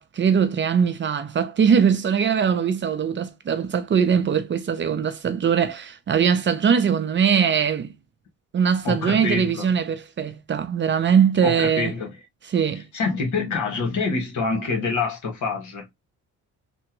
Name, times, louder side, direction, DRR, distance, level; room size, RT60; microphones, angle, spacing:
voice 1, 0.0-7.9 8.5-11.9 12.5-12.8, right 7 dB, 40° right, 0.6 m, -21 dB
voice 2, 8.8-9.6 11.4-12.1 12.9-15.9, left 4 dB, 75° left, 1.5 m, -26 dB
3.4 x 2.1 x 3.0 m
cardioid pair, 90°, 30 cm